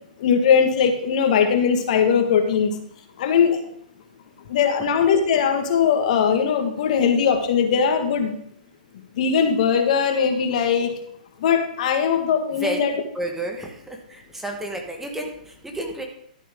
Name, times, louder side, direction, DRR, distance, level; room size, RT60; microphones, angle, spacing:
voice 1, 0.2-2.8 3.2-3.6 4.5-8.4 9.2-10.9 11.4-12.9, left 7 dB, 55° left, 5 dB, 1.8 m, -20 dB
voice 2, 13.1-16.1, right 1 dB, 5° right, 2 dB, 1.5 m, -31 dB
12.5 x 7.8 x 3.8 m, 0.69 s
hypercardioid pair, 125°, 5 cm